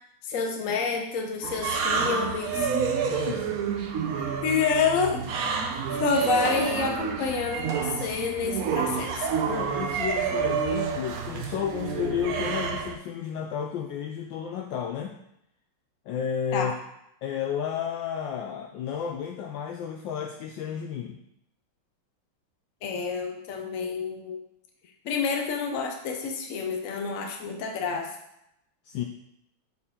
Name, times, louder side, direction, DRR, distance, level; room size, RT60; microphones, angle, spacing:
voice 1, 0.2-2.7 4.4-5.2 5.9-9.3 16.5-16.7 22.8-24.4 25.0-28.1, left 5 dB, 50° left, 3 dB, 1.1 m, -28 dB
sound 1, 1.4-12.9, right 6 dB, 65° right, 0.9 m, -29 dB
voice 2, 3.1-3.6 9.5-15.1 16.1-16.7 17.2-21.2 28.8-29.0, left 8 dB, 75° left, 3 dB, 1.2 m, -32 dB
8.0 x 4.3 x 3.7 m, 0.80 s
omnidirectional pair, 2.3 m